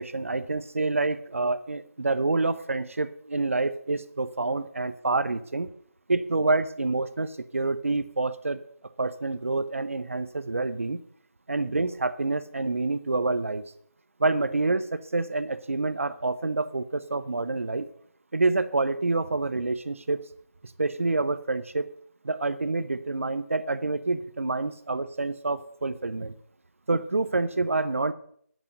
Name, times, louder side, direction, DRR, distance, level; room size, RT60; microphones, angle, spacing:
voice 1, 0.0-5.7 6.1-8.6 9.0-11.0 11.5-13.6 14.2-17.9 18.3-20.2 20.6-21.9 22.2-26.3 26.9-28.1, right 3 dB, 55° right, 12 dB, 0.8 m, -27 dB
10.5 x 8.4 x 7.9 m, 0.65 s
figure-of-eight pair, 160°, 8 cm